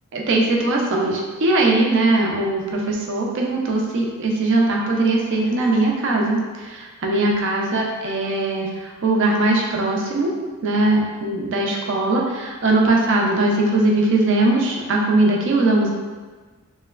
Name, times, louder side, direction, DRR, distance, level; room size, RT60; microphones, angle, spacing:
voice 1, 0.1-10.3 10.6-15.9, right 2 dB, 55° right, -1 dB, 0.4 m, -20 dB
3.1 x 2.9 x 2.3 m, 1.4 s
head